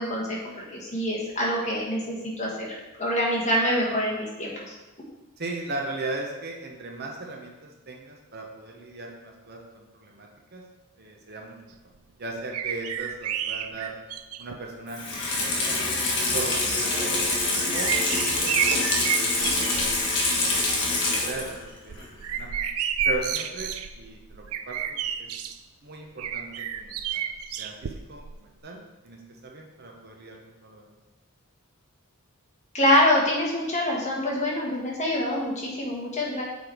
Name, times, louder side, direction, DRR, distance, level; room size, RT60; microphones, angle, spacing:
voice 1, 0.0-4.7 32.7-36.4, left 1 dB, 30° left, -3 dB, 1.5 m, -25 dB
voice 2, 5.4-10.6 11.0-11.7 12.2-13.9 14.4-15.8 16.3-20.4 21.0-21.6 21.8-22.0 22.3-22.5 23.0-25.3 25.8-27.2 27.6-30.8, right 2 dB, 45° right, 0 dB, 1.1 m, -38 dB
sound 1, 12.5-14.6 15.4-15.5 17.1-20.0 20.4-20.8 21.2-25.6 26.2-28.3 28.6-28.7, right 8 dB, 80° right, 0.4 m, -30 dB
Water tap faucet / Sink (filling or washing), 14.9-21.6 22.0-22.1, left 2 dB, 55° left, 1.6 m, -25 dB
6.9 x 4.7 x 4.6 m, 1.1 s
head